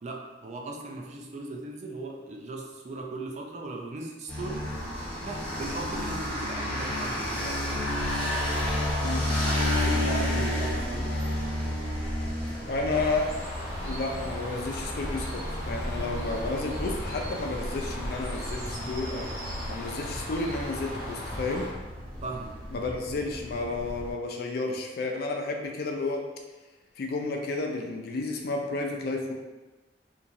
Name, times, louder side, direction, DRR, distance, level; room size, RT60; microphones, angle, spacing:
voice 1, 0.0-4.7 5.2-7.9 9.8-11.2 22.2-22.5, right 2 dB, 40° right, 1 dB, 0.3 m, -38 dB
sound 1, 4.3-24.1, left 1 dB, 5° left, 1.2 m, -32 dB
voice 2, 12.7-13.3 13.8-21.7 22.7-26.2 27.0-29.3, left 3 dB, 60° left, 2 dB, 0.4 m, -32 dB
Bird, 12.9-21.7, equal, 20° right, 1.1 m, -37 dB
3.0 x 2.3 x 2.5 m, 1.2 s
head